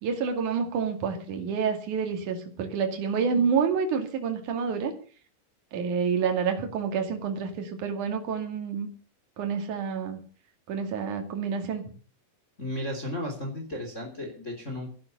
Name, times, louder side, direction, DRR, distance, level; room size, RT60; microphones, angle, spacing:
voice 1, 0.0-4.9 5.7-8.9 9.4-10.2 10.7-11.9, right 6 dB, 50° right, 4 dB, 3.5 m, -28 dB
voice 2, 12.6-14.9, left 1 dB, 20° left, 3 dB, 3.1 m, -34 dB
12.5 x 11.5 x 6.9 m, 0.41 s
omnidirectional pair, 4.9 m